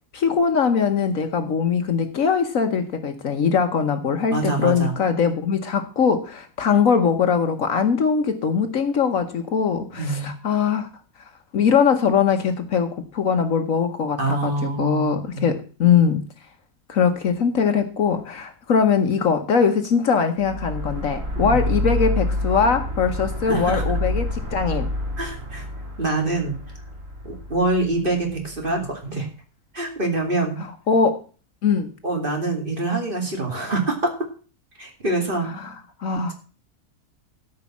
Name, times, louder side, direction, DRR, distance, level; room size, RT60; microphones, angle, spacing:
voice 1, 0.1-10.9 11.5-16.3 16.9-24.9 30.9-31.2 31.6-31.9 35.6-35.7 36.0-36.3, left 6 dB, 65° left, 7 dB, 1.4 m, -21 dB
voice 2, 4.3-5.0 9.9-10.3 14.2-15.5 21.4-21.6 23.4-23.8 25.2-25.7 26.0-26.6 27.2-29.3 29.7-30.6 32.0-34.1 34.8-35.5, right 2 dB, 35° right, 2 dB, 2.8 m, -25 dB
sound 1, 20.4-28.7, left 1 dB, 55° right, 3.3 m, -28 dB
13.5 x 5.5 x 7.2 m, 0.39 s
omnidirectional pair, 1.6 m